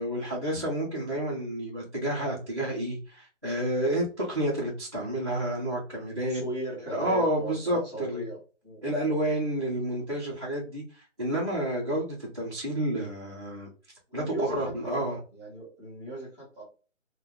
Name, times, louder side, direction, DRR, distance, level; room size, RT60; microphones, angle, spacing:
voice 1, 0.0-6.4 6.9-8.2 8.8-13.7 14.1-15.2, right 1 dB, 25° right, 0.5 m, -30 dB
voice 2, 6.2-8.4 8.6-8.8 9.1-9.3 14.1-16.6, right 1 dB, ahead, 1.5 m, -38 dB
2.6 x 2.2 x 3.4 m
hypercardioid pair, 170°, 37 cm